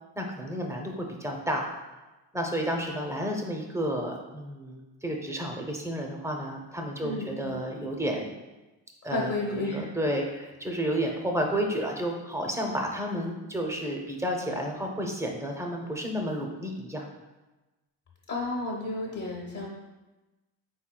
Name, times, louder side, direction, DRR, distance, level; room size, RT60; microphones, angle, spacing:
voice 1, 0.2-1.7 2.3-8.3 9.0-17.1, equal, 5° right, 1 dB, 0.5 m, -31 dB
voice 2, 7.0-7.7 9.0-9.9 18.3-19.7, left 2 dB, 50° left, -2 dB, 0.8 m, -32 dB
4.4 x 4.2 x 2.2 m, 1.1 s
cardioid pair, 95°, 39 cm